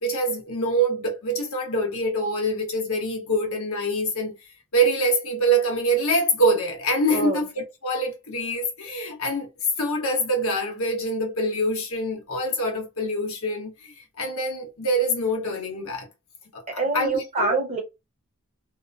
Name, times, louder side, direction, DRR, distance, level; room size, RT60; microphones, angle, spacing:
voice 1, 0.0-4.3 4.7-9.5 9.8-16.1 16.5-17.5, right 1 dB, 65° left, 1.0 m, -25 dB
voice 2, 16.8-17.8, right 3 dB, 30° right, 0.8 m, -25 dB
2.9 x 2.1 x 2.4 m
head